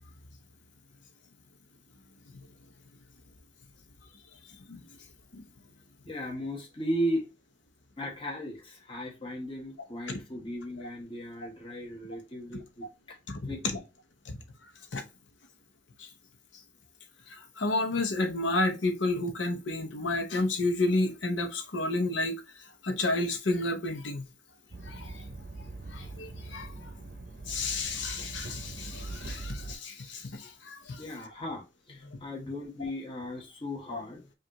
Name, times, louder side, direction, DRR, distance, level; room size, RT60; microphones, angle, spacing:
voice 1, 6.0-7.3 8.0-13.2 13.5-13.8 31.0-34.3, equal, 25° left, 1.0 m, -36 dB
voice 2, 13.3-13.8 14.2-14.4 14.9-15.0 16.0-16.1 17.3-22.4 22.8-24.3 24.8-25.2 25.9-26.7 27.5-31.0 33.9-34.0, left 2 dB, 75° left, 0.8 m, -31 dB
sound 1, 24.7-29.7, right 2 dB, 55° right, 0.6 m, -42 dB
5.1 x 2.5 x 2.9 m
head